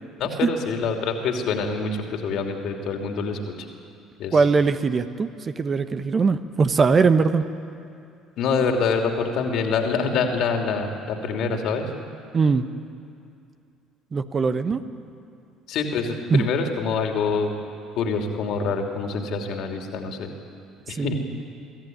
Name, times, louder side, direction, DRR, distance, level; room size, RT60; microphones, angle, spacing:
voice 1, 0.2-3.4 4.2-4.4 8.4-11.9 15.7-17.6 18.0-20.3 20.9-21.2, left 5 dB, 60° left, 3 dB, 2.9 m, -25 dB
voice 2, 4.3-7.4 12.3-12.7 14.1-14.8 16.3-16.5 21.0-21.2, right 4 dB, 35° right, 10 dB, 1.2 m, -21 dB
24.5 x 15.0 x 9.4 m, 2.5 s
hypercardioid pair, 60°, 0 cm